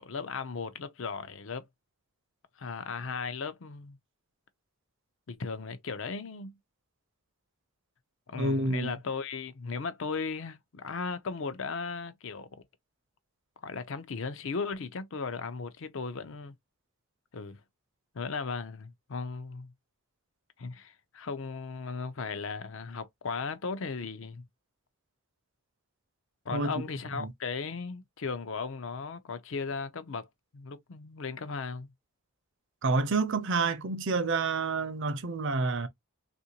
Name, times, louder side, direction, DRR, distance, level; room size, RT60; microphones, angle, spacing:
voice 1, 0.0-1.6 2.6-4.0 5.3-6.5 8.3-12.6 13.6-16.5 17.3-17.6 18.1-19.7 20.6-24.4 26.5-30.3 30.5-31.9, left 4 dB, 60° left, 0.5 m, -36 dB
voice 2, 8.3-8.9 26.5-26.7 27.2-27.3 32.8-35.9, right 3 dB, 55° right, 0.6 m, -28 dB
3.5 x 2.6 x 2.8 m
head